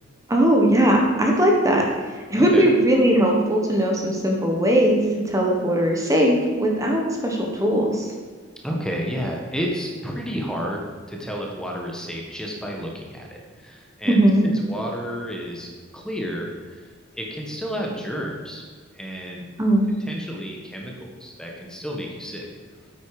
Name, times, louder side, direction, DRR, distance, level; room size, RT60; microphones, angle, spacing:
voice 1, 0.3-1.8 2.3-8.1 14.1-14.5 19.6-19.9, right 1 dB, 15° right, 0 dB, 1.3 m, -19 dB
voice 2, 8.6-18.6 18.9-19.5 20.0-22.5, equal, 5° left, -1 dB, 1.3 m, -31 dB
9.6 x 8.6 x 4.9 m, 1.5 s
head